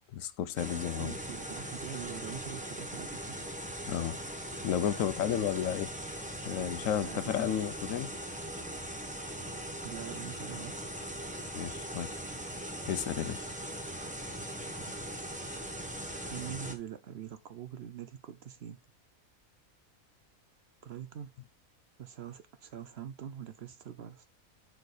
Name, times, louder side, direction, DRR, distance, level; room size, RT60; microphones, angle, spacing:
voice 1, 0.1-1.2 3.9-4.2 4.6-5.9 6.5-8.1 11.5-12.2 12.8-13.4, left 9 dB, 75° left, 1.0 m, -32 dB
sound 1, 0.6-16.7, right 1 dB, 5° right, 1.0 m, -40 dB
voice 2, 1.0-3.4 7.0-7.5 9.8-10.9 14.6-14.9 16.3-18.8 20.8-21.3 22.0-24.3, right 9 dB, 60° right, 0.8 m, -44 dB
6.5 x 4.6 x 4.8 m
omnidirectional pair, 1.4 m